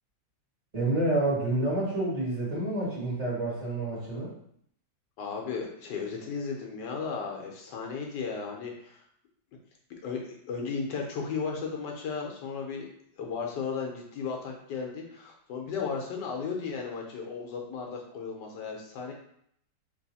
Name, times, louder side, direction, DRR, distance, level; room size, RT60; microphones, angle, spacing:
voice 1, 0.7-4.3, right 2 dB, 20° right, -9 dB, 1.7 m, -28 dB
voice 2, 5.2-9.0 9.9-12.9 13.2-19.1, left 5 dB, 75° left, 1 dB, 1.3 m, -35 dB
3.4 x 3.0 x 4.0 m, 0.68 s
omnidirectional pair, 1.9 m